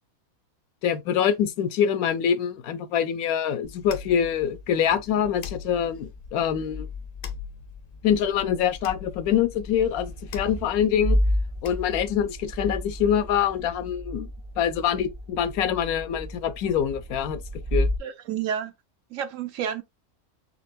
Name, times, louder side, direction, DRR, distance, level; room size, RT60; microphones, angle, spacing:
voice 1, 0.8-6.9 8.0-11.2 11.6-14.3 14.6-17.9, left 8 dB, 80° left, 1.1 m, -25 dB
sound 1, 3.6-12.2, left 6 dB, 55° left, 0.6 m, -41 dB
sound 2, 9.7-18.0, equal, 45° right, 0.4 m, -30 dB
voice 2, 18.0-18.7 19.1-19.8, right 9 dB, 65° right, 1.0 m, -30 dB
4.5 x 3.5 x 2.5 m
omnidirectional pair, 1.5 m